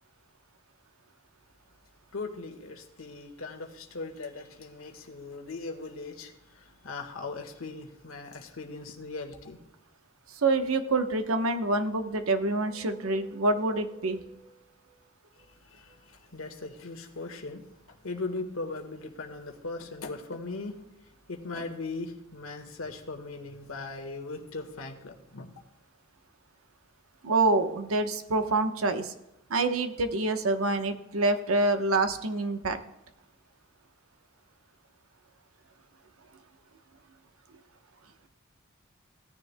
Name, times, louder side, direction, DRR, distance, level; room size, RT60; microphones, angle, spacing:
voice 1, 2.1-9.6 15.6-20.8 21.3-25.5, left 3 dB, 80° left, 4 dB, 1.6 m, -39 dB
voice 2, 10.4-14.5 27.2-29.1 29.5-32.8, right 2 dB, 85° right, 8 dB, 1.0 m, -26 dB
17.0 x 10.0 x 2.2 m, 0.92 s
head